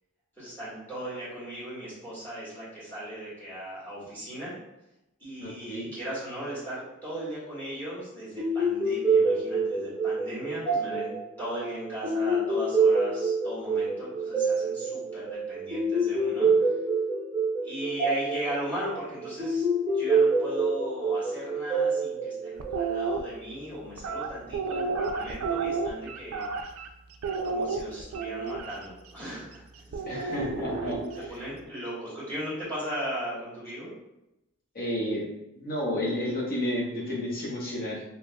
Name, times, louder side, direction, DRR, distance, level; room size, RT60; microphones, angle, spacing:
voice 1, 0.4-4.5 5.2-11.1 11.4-16.8 17.6-19.6 19.9-26.5 27.4-30.4 31.1-33.9 38.0-38.1, equal, 10° left, -11 dB, 1.5 m, -37 dB
voice 2, 5.4-5.9 30.0-31.0 34.7-35.3 35.6-38.0, left 1 dB, 45° left, -3 dB, 0.9 m, -31 dB
sound 1, 8.4-23.1, right 3 dB, 10° right, 0.9 m, -26 dB
sound 2, 22.6-23.2 24.0-26.9 27.2-28.7 29.9-31.3, right 4 dB, 85° right, 0.4 m, -31 dB
3.4 x 2.9 x 2.2 m, 0.91 s
head